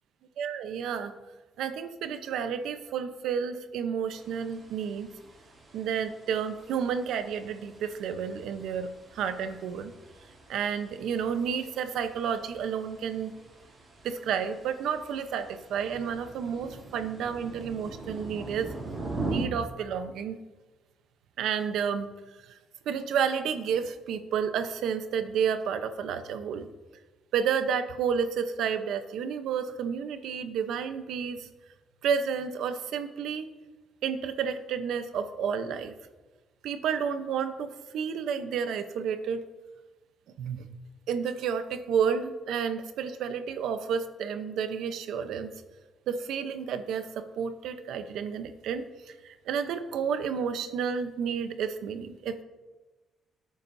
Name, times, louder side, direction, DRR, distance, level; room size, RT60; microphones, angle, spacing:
voice 1, 0.4-1.1 1.6-5.1 5.7-9.9 10.5-13.3 14.0-18.7 19.2-20.4 21.4-22.1 22.4-22.6 22.9-26.7 27.3-31.5 32.0-33.5 34.0-35.9 36.6-39.4 40.4-40.7 41.1-45.5 46.1-52.4, right 7 dB, 80° right, 9 dB, 0.8 m, -31 dB
sound 1, 4.1-19.4, right 2 dB, 40° right, 2.8 m, -43 dB
17.0 x 8.9 x 2.7 m, 1.2 s
cardioid pair, 90°, 0 cm